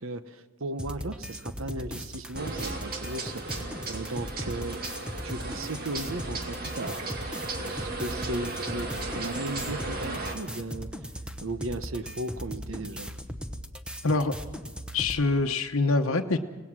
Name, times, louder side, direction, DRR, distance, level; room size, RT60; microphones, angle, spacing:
voice 1, 0.0-4.9 5.2-7.0 7.6-11.1 11.4-13.1, right 2 dB, 70° right, 12 dB, 1.0 m, -36 dB
sound 1, 0.8-15.2, equal, 5° right, 0.9 m, -38 dB
sound 2, 2.3-10.3, right 3 dB, 45° right, 2.2 m, -36 dB
voice 2, 14.9-16.4, left 3 dB, 70° left, 3 dB, 1.0 m, -25 dB
24.5 x 18.5 x 6.2 m, 1.4 s
head